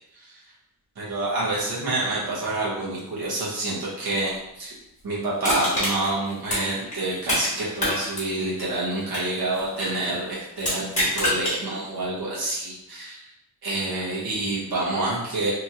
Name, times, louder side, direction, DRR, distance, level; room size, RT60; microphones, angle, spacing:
voice 1, 1.0-4.7 5.0-13.3 13.6-15.5, right 2 dB, 70° right, -6 dB, 1.0 m, -28 dB
Crushing, 5.4-7.5 7.8-10.0 10.6-11.6 12.0-12.1, left 1 dB, 20° left, 1.1 m, -26 dB
2.9 x 2.5 x 2.7 m, 0.90 s
wide cardioid pair, 165°, 39 cm